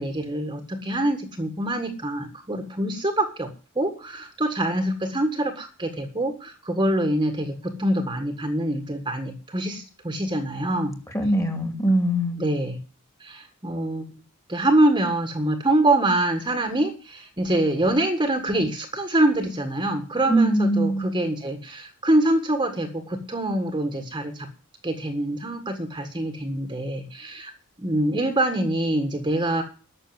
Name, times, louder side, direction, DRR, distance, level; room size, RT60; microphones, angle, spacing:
voice 1, 0.0-11.0 12.4-12.8 13.2-14.1 14.5-24.5 24.8-27.5 27.8-29.6, right 1 dB, 20° right, 5 dB, 1.6 m, -25 dB
voice 2, 11.1-12.4 20.3-21.1, right 1 dB, 15° left, 5 dB, 2.5 m, -21 dB
12.0 x 6.8 x 9.5 m, 0.35 s
head